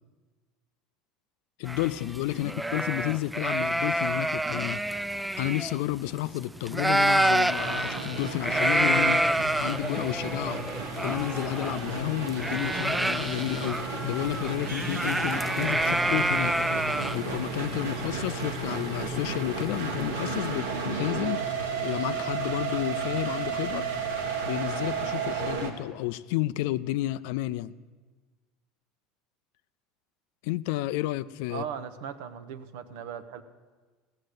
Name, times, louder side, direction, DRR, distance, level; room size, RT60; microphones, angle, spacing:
voice 1, 1.6-4.8 5.4-9.3 9.6-10.6 11.0-16.6 16.9-21.5 21.8-23.9 24.4-27.7 30.4-31.6, left 16 dB, 70° left, 0.4 m, -31 dB
sound 1, 1.7-6.4 6.6-19.6, right 1 dB, 5° right, 0.4 m, -28 dB
sound 2, 7.6-25.7, right 4 dB, 90° right, 1.4 m, -33 dB
voice 2, 31.5-33.4, right 8 dB, 75° right, 0.8 m, -38 dB
16.0 x 6.5 x 8.1 m
hypercardioid pair, 85°, 0 cm